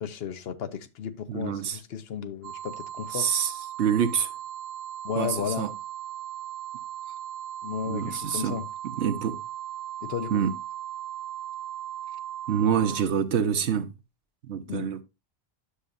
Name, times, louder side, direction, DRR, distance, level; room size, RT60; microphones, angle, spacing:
voice 1, 0.0-3.3 5.0-5.7 7.6-8.6 10.0-10.4 14.7-14.9, left 7 dB, 70° left, 0.9 m, -34 dB
voice 2, 1.3-1.8 3.1-3.5 3.8-4.3 5.2-5.7 7.8-8.6 9.0-9.4 10.3-10.5 12.5-13.9 14.5-15.0, right 8 dB, 90° right, 1.2 m, -26 dB
sound 1, 2.4-13.0, right 11 dB, 70° right, 0.8 m, -38 dB
9.9 x 6.5 x 2.5 m
omnidirectional pair, 1.1 m